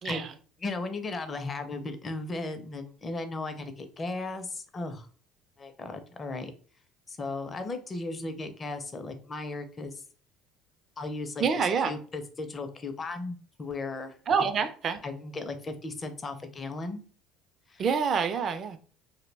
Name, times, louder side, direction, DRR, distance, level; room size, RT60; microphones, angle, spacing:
voice 1, 0.0-0.3 11.4-11.9 14.3-15.0 17.8-18.8, right 6 dB, 45° right, 0.4 m, -27 dB
voice 2, 0.6-5.1 5.6-6.5 7.1-10.0 11.0-11.4 11.9-14.2 15.0-17.0 17.7-17.8, left 3 dB, 30° left, 0.5 m, -36 dB
2.2 x 2.1 x 3.2 m
supercardioid pair, 80°, 0 cm